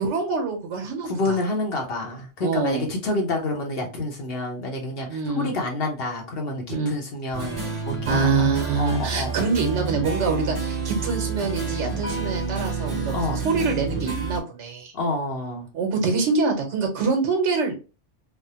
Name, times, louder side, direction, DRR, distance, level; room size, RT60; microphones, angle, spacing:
voice 1, 0.0-1.4 2.4-2.9 5.1-5.5 6.7-7.0 8.1-14.9 15.7-17.7, right 4 dB, 80° right, 3 dB, 1.1 m, -25 dB
voice 2, 1.0-7.6 7.9-8.5 8.8-9.3 13.1-13.4 14.9-15.7, left 2 dB, 60° left, 1 dB, 1.0 m, -28 dB
sound 1, 7.3-14.4, right 5 dB, 25° right, 1.2 m, -29 dB
3.3 x 2.0 x 2.7 m, 0.31 s
omnidirectional pair, 1.2 m